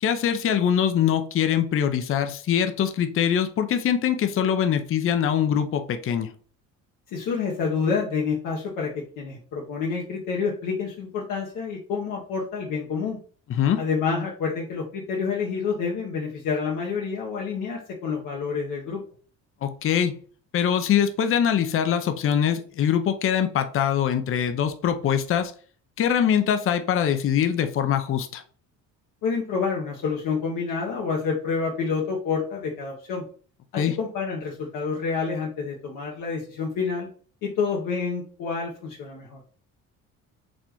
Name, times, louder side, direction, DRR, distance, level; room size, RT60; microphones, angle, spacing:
voice 1, 0.0-6.3 13.5-13.8 19.6-20.1 20.5-25.5 26.0-28.4 33.8-33.9, left 9 dB, 40° left, 8 dB, 0.6 m, -23 dB
voice 2, 7.1-13.2 13.8-19.0 29.2-33.2 33.7-37.1 37.4-39.4, left 5 dB, 70° left, -1 dB, 1.0 m, -28 dB
4.2 x 3.3 x 3.0 m, 0.43 s
cardioid pair, 95°, 33 cm